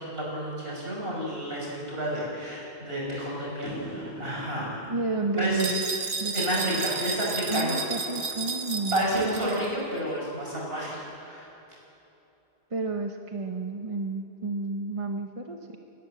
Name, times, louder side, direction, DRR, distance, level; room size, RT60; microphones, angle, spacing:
voice 1, 0.0-4.8 5.3-5.8 6.3-7.8 8.9-11.5, right 1 dB, 60° right, -4 dB, 6.9 m, -30 dB
sound 1, 3.6-10.1, equal, 20° left, 3.7 m, -46 dB
voice 2, 4.9-5.8 6.2-6.8 7.5-9.0 12.7-15.6, right 3 dB, 30° right, 3 dB, 1.0 m, -31 dB
sound 2, 5.6-9.7, right 4 dB, 85° right, 1.6 m, -32 dB
29.5 x 12.5 x 7.7 m, 2.9 s
omnidirectional pair, 1.1 m